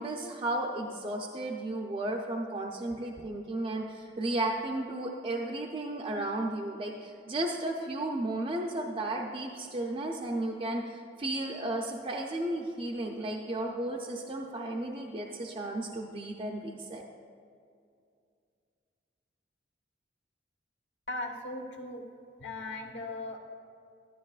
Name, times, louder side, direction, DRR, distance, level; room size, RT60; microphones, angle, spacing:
voice 1, 0.0-17.0, right 1 dB, 30° right, 0 dB, 0.5 m, -34 dB
voice 2, 21.1-22.0 22.4-23.4, left 2 dB, 70° left, 2 dB, 1.1 m, -38 dB
12.0 x 11.0 x 2.4 m, 2.4 s
head